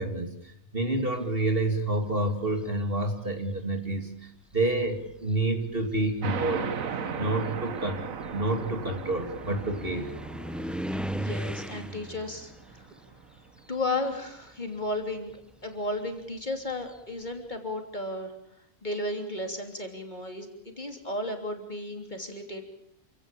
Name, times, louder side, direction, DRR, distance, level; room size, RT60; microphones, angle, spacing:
voice 1, 0.0-6.7 7.1-10.1, right 2 dB, 40° right, 5 dB, 2.9 m, -29 dB
sound 1, 2.3-2.8 3.8-3.9 4.5-14.4 14.7-17.3, equal, ahead, 0.6 m, -40 dB
sound 2, 6.2-13.4, right 6 dB, 70° right, 1.7 m, -37 dB
voice 2, 11.1-12.9 13.7-15.3 15.6-18.3 18.8-22.7, left 2 dB, 30° left, 4 dB, 3.4 m, -34 dB
28.0 x 17.5 x 8.6 m, 0.75 s
omnidirectional pair, 1.5 m